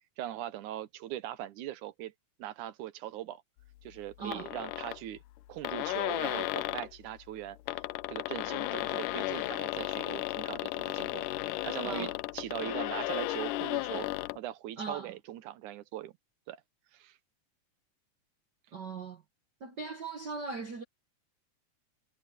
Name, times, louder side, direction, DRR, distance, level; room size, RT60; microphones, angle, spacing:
voice 1, 0.2-2.1 2.4-3.4 3.8-5.2 5.5-7.8 8.1-14.1 14.4-16.1 16.5-16.6 16.9-17.2, right 13 dB, 75° right, 2.4 m, -40 dB
voice 2, 4.2-4.5 11.8-12.1 14.8-15.1 18.7-19.2 19.6-20.8, right 4 dB, 50° right, 1.3 m, -39 dB
sound 1, 4.3-5.0 5.4-5.5 5.6-6.9 7.5-14.4, left 18 dB, 85° left, 2.2 m, -34 dB
omnidirectional pair, 3.6 m